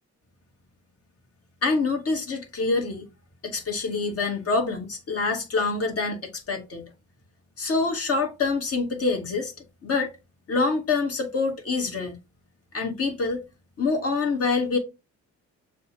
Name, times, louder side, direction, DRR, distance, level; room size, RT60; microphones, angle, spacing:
voice 1, 1.6-3.1 3.4-6.9 7.6-9.5 9.8-10.1 10.5-12.2 12.7-13.4 13.8-14.8, left 4 dB, 50° left, 1.5 m, -26 dB
6.7 x 2.4 x 2.9 m
cardioid pair, 90°, 30 cm